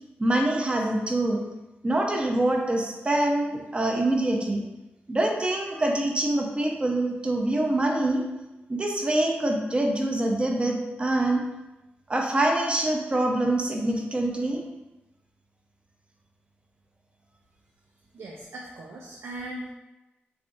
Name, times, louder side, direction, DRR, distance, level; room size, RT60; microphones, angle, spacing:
voice 1, 0.2-1.4 1.8-4.6 5.1-8.2 8.7-11.4 12.1-14.6, right 1 dB, 25° right, 1 dB, 0.5 m, -25 dB
voice 2, 18.1-19.7, right 1 dB, 85° right, -2 dB, 0.4 m, -39 dB
3.3 x 3.3 x 2.6 m, 1.0 s
wide cardioid pair, 105°, 4 cm